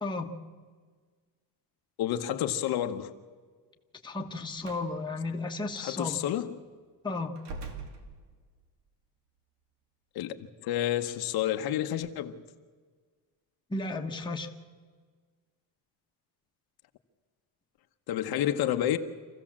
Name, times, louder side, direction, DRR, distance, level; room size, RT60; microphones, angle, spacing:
voice 1, 0.0-0.3 4.0-6.2 7.0-7.3 13.7-14.5, left 3 dB, 10° left, 1.3 m, -33 dB
voice 2, 2.0-3.1 5.8-6.6 10.1-12.4 18.1-19.0, left 11 dB, 60° left, 1.1 m, -30 dB
Slam, 4.6-4.9 5.8-6.0 7.4-8.6, right 3 dB, 70° right, 2.7 m, -43 dB
26.0 x 15.5 x 7.4 m
cardioid pair, 155°, 42 cm